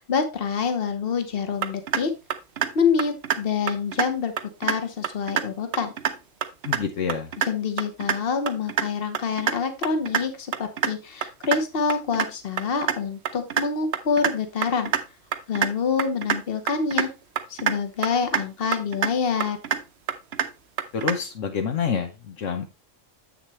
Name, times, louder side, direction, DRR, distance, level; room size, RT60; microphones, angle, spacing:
voice 1, 0.0-2.1 2.7-4.3 4.6-5.9 7.5-14.9 15.5-17.1 17.5-19.6, left 5 dB, 50° left, 7 dB, 1.3 m, -26 dB
sound 1, 1.6-2.0 2.3-2.7 3.0-3.4 3.7-4.1 4.4-4.8 5.0-5.5 5.7-6.1 6.4-6.8 7.1-7.5 7.8-8.2 8.5-8.8 9.1-9.5 9.8-10.2 10.5-10.9 11.2-11.6 11.9-12.3 12.6-13.0 13.3-13.6 13.9-14.3 14.6-15.0 15.3-15.7 16.0-16.4 16.7-17.1 17.4-17.8 18.0-18.4 18.7-19.1 19.4-19.8 20.1-20.5 20.8-21.2, right 8 dB, 60° right, 0.9 m, -25 dB
voice 2, 6.6-7.3 20.9-22.7, left 6 dB, 70° left, 6 dB, 1.2 m, -27 dB
7.8 x 6.6 x 3.1 m, 0.26 s
omnidirectional pair, 1.3 m